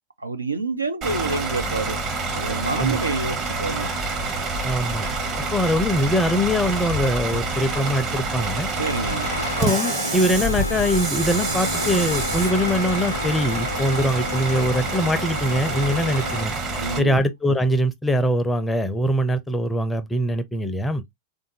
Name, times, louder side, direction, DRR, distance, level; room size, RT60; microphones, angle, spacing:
voice 1, 0.2-2.0 2.3-3.9 8.8-9.3 16.8-17.2, right 3 dB, 80° right, 0.5 m, -27 dB
Bus / Idling, 1.0-17.0, right 3 dB, 35° right, 0.9 m, -27 dB
voice 2, 4.6-5.1 5.5-8.7 9.6-16.5 17.0-21.0, equal, 10° left, 0.5 m, -22 dB
Engine starting, 8.4-16.5, left 3 dB, 80° left, 0.5 m, -31 dB
3.6 x 2.5 x 2.7 m
figure-of-eight pair, 90°, 0 cm